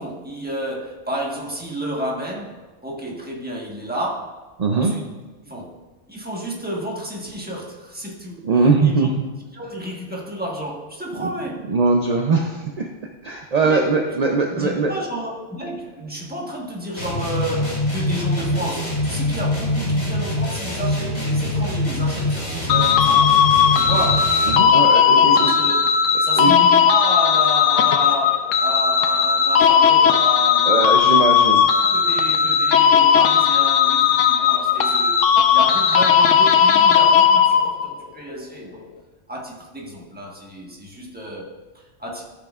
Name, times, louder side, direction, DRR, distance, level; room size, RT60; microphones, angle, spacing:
voice 1, 0.0-4.4 4.7-5.1 5.5-5.7 6.1-9.1 9.5-11.7 13.6-13.9 14.5-23.4 23.7-24.4 25.2-25.9 26.2-31.0 31.6-38.8 39.3-42.3, right 1 dB, 10° right, -3 dB, 1.2 m, -31 dB
voice 2, 4.6-4.9 8.4-9.2 11.2-11.3 11.7-12.9 13.2-14.9 24.5-25.5 26.4-26.5 30.7-31.6, right 4 dB, 50° right, 2 dB, 0.5 m, -20 dB
sound 1, 17.0-24.7, left 1 dB, 65° left, 2.6 m, -24 dB
sound 2, 22.7-37.9, left 7 dB, 85° left, 1.0 m, -16 dB
13.5 x 6.3 x 2.4 m, 1.3 s
omnidirectional pair, 1.3 m